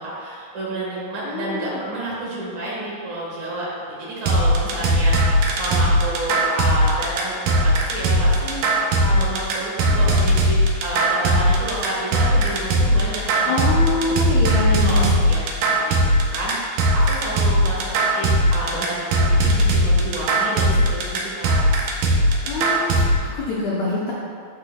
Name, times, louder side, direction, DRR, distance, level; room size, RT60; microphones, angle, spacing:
voice 1, 0.0-15.4 15.8-21.6, right 1 dB, 60° right, -6 dB, 2.7 m, -30 dB
voice 2, 1.2-1.8 13.4-15.1 22.4-24.1, left 3 dB, 90° left, -5 dB, 1.5 m, -25 dB
sound 1, 4.3-23.1, equal, 75° right, 2.1 m, -18 dB
12.5 x 5.2 x 2.3 m, 2.2 s
omnidirectional pair, 4.2 m